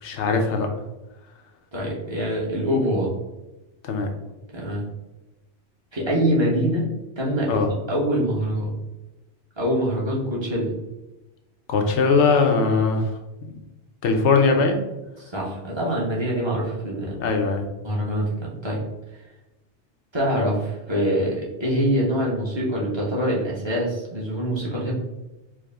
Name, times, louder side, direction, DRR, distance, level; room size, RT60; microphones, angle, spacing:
voice 1, 0.0-0.7 3.8-4.1 7.5-7.7 11.7-13.1 13.4-13.5 14.0-14.8 17.2-17.6, left 4 dB, 75° left, 3 dB, 0.9 m, -20 dB
voice 2, 1.7-3.1 4.5-4.9 5.9-6.9 7.2-7.6 7.9-8.8 9.6-10.7 15.2-17.2 17.8-18.8 20.1-24.9, equal, 25° right, -4 dB, 0.9 m, -24 dB
4.7 x 2.1 x 3.4 m, 1.0 s
omnidirectional pair, 1.2 m